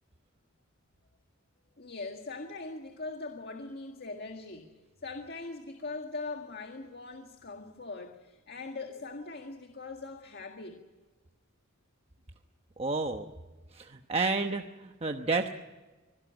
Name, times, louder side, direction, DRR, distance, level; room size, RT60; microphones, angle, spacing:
voice 1, 1.8-4.7 5.0-10.8, left 3 dB, 50° left, 4 dB, 1.8 m, -41 dB
voice 2, 12.8-13.3 13.7-15.5, right 3 dB, 30° right, 5 dB, 1.0 m, -30 dB
25.0 x 17.5 x 9.0 m, 1.2 s
head